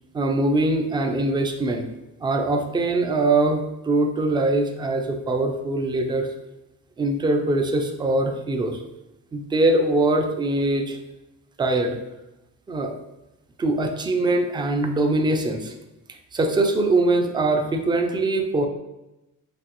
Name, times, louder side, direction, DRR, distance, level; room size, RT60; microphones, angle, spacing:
voice 1, 0.1-1.9 2.2-6.3 7.0-8.8 9.3-11.0 11.6-12.0 12.7-12.9 13.6-15.7 16.3-18.7, right 2 dB, 15° right, 4 dB, 0.3 m, -22 dB
5.8 x 2.9 x 3.0 m, 0.96 s
cardioid pair, 175°, 31 cm